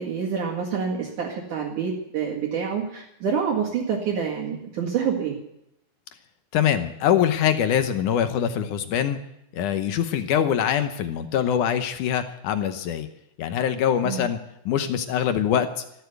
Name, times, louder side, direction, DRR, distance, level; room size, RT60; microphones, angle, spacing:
voice 1, 0.0-5.4 14.0-14.2, right 6 dB, 60° right, -4 dB, 3.4 m, -27 dB
voice 2, 6.5-9.2 9.5-13.1 13.4-14.4 14.7-15.8, left 9 dB, 70° left, 9 dB, 2.2 m, -23 dB
14.0 x 13.0 x 8.0 m, 0.81 s
omnidirectional pair, 4.3 m